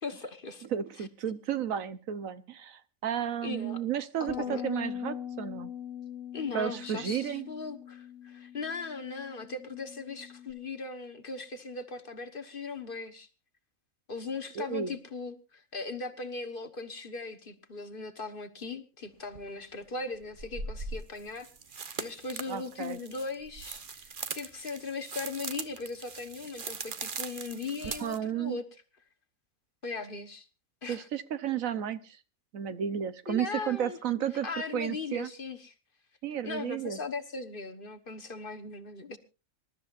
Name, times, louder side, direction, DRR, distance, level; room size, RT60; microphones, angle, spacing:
voice 1, 0.0-0.7 1.0-1.1 3.4-3.8 4.2-4.6 6.3-13.3 14.1-21.5 22.0-28.6 29.8-30.5 30.8-31.1 33.3-34.0 34.4-35.7 36.4-39.2, left 4 dB, 40° left, 8 dB, 1.4 m, -38 dB
voice 2, 0.7-5.7 6.5-7.5 14.6-14.9 22.5-23.0 27.9-28.6 30.9-32.2 32.5-34.5 34.7-35.3 36.2-37.0, right 9 dB, 75° right, 13 dB, 1.3 m, -33 dB
Bass guitar, 4.3-10.5, left 9 dB, 65° left, 2.8 m, -41 dB
sound 1, 19.3-19.4 20.3-28.2, right 4 dB, 40° right, 1.1 m, -40 dB
26.0 x 13.0 x 2.5 m, 0.31 s
omnidirectional pair, 1.4 m